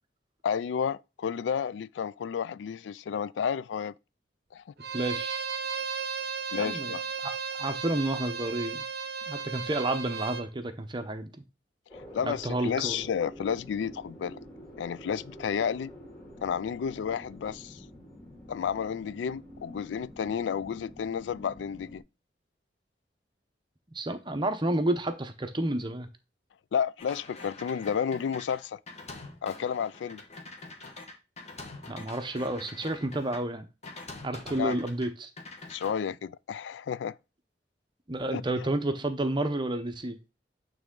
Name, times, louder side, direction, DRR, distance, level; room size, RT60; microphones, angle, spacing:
voice 1, 0.4-3.9 4.5-4.6 6.5-7.0 11.9-14.4 14.8-15.9 16.4-17.8 18.5-22.0 26.7-28.8 29.4-30.2 34.6-34.8 35.7-37.2 38.3-38.4, left 7 dB, 85° left, 0.3 m, -31 dB
Bowed string instrument, 4.8-10.5, right 5 dB, 60° right, 0.7 m, -35 dB
voice 2, 4.9-5.4 6.6-8.8 9.3-11.4 12.2-13.0 23.9-26.1 31.9-33.6 34.2-35.3 38.1-40.2, right 1 dB, 25° right, 0.8 m, -31 dB
sound 1, 11.9-22.0, equal, 15° left, 2.7 m, -47 dB
sound 2, 27.0-33.4 33.8-35.1 35.4-35.9, left 3 dB, 40° left, 1.5 m, -45 dB
8.9 x 3.5 x 3.8 m
head